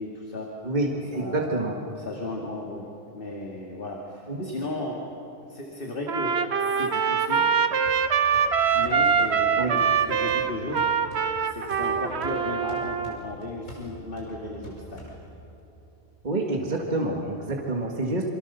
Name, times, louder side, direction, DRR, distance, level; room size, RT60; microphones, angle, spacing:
voice 1, 0.0-0.5 1.1-1.5 2.0-5.1 5.4-7.5 8.7-10.8 11.4-15.0, left 2 dB, 40° left, -1 dB, 2.5 m, -35 dB
voice 2, 0.6-1.7 4.3-4.5 9.6-9.8 16.2-18.3, right 2 dB, 30° right, 0 dB, 1.9 m, -27 dB
Trumpet, 6.1-13.2, right 6 dB, 55° right, 1.2 m, -24 dB
sound 1, 7.9-15.6, equal, 60° left, 5.9 m, -45 dB
28.0 x 25.0 x 6.9 m, 2.9 s
omnidirectional pair, 1.5 m